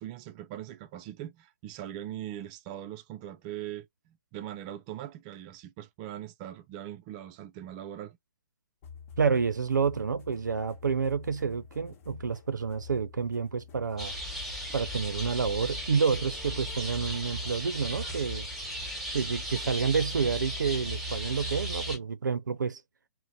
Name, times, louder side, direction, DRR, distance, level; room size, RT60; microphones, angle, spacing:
voice 1, 0.0-8.2, right 12 dB, 25° right, 0.3 m, -41 dB
sound 1, 8.8-16.9, left 6 dB, 45° left, 1.0 m, -49 dB
voice 2, 9.2-14.1 14.7-18.5 19.1-22.8, right 5 dB, 85° right, 0.5 m, -29 dB
sound 2, 14.0-22.0, equal, ahead, 1.0 m, -36 dB
2.6 x 2.1 x 2.3 m
hypercardioid pair, 135°, 10 cm